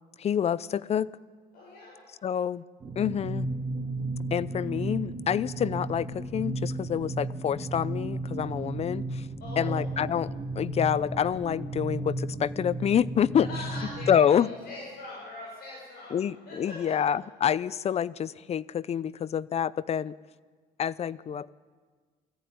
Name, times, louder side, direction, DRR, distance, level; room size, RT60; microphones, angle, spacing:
voice 1, 0.2-1.1 2.2-2.6 3.0-3.5 4.3-9.3 9.6-10.3 10.6-13.5 14.1-14.5 16.1-20.1 20.8-21.5, left 8 dB, 40° left, 20 dB, 0.6 m, -27 dB
voice 2, 1.5-1.9 9.4-9.8 13.4-16.2 16.4-17.0, left 2 dB, 65° left, -4 dB, 7.2 m, -41 dB
sound 1, 2.8-14.1, right 2 dB, 25° right, 3.1 m, -34 dB
22.0 x 14.5 x 9.4 m, 1.5 s
cardioid pair, 110°, 17 cm